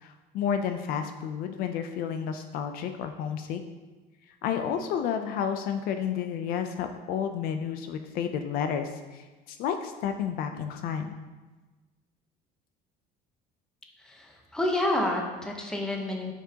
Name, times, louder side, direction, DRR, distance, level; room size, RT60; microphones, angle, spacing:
voice 1, 0.0-3.6 4.4-11.1, left 8 dB, 60° left, 7 dB, 0.5 m, -31 dB
voice 2, 14.0-16.3, left 1 dB, 5° left, 0 dB, 0.8 m, -29 dB
9.6 x 5.9 x 2.8 m, 1.2 s
cardioid pair, 175°, 17 cm